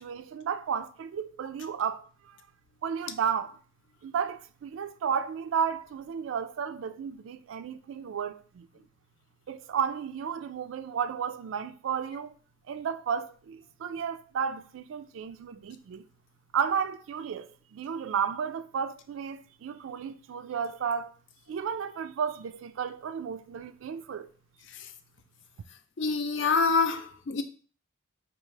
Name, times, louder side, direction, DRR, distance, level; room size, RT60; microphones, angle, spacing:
voice 1, 0.0-2.4 2.8-3.6 4.0-8.8 9.5-12.3 12.7-16.0 16.5-21.1 21.5-24.3, right 7 dB, 75° right, 0.3 m, -33 dB
voice 2, 26.0-27.4, left 4 dB, 65° left, 0.5 m, -26 dB
4.5 x 2.4 x 3.2 m
head